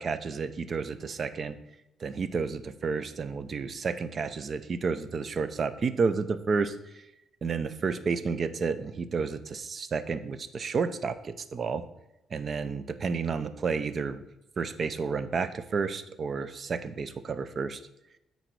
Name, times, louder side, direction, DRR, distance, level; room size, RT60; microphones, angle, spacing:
voice 1, 0.0-1.6 2.0-7.0 7.4-11.8 12.3-14.2 14.6-17.8, right 5 dB, 45° right, 12 dB, 0.6 m, -31 dB
8.8 x 4.0 x 4.7 m, 0.88 s
cardioid pair, 90°, 0 cm